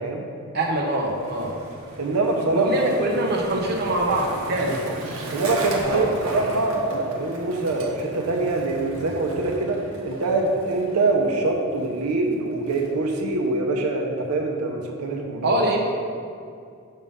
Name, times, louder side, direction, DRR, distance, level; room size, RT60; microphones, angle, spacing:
voice 1, 0.5-1.5 2.5-4.8 5.8-6.1 15.4-15.8, right 1 dB, 45° right, -1 dB, 0.8 m, -23 dB
Skateboard, 0.6-13.3, right 1 dB, 70° right, 1.0 m, -37 dB
voice 2, 2.0-2.9 4.6-4.9 5.3-15.6, right 3 dB, 90° right, 2 dB, 0.7 m, -24 dB
6.3 x 3.6 x 5.4 m, 2.3 s
head